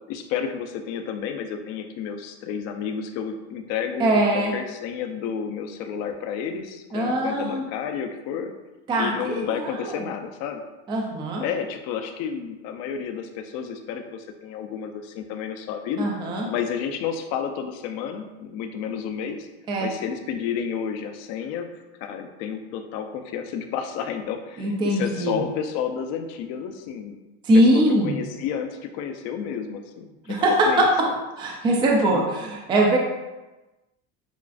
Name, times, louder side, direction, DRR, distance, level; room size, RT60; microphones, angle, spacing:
voice 1, 0.1-8.5 9.0-10.6 11.4-16.1 16.5-19.5 19.8-21.7 22.0-27.2 27.5-30.8 32.0-32.3, left 7 dB, 55° left, 6 dB, 0.5 m, -31 dB
voice 2, 4.0-4.5 6.9-7.7 8.9-10.1 10.9-11.4 16.0-16.5 19.7-19.9 24.6-25.4 27.4-28.2 30.3-31.1 31.4-33.0, right 1 dB, 15° right, -1 dB, 0.3 m, -22 dB
7.0 x 2.4 x 2.4 m, 1.1 s
cardioid pair, 155°, 31 cm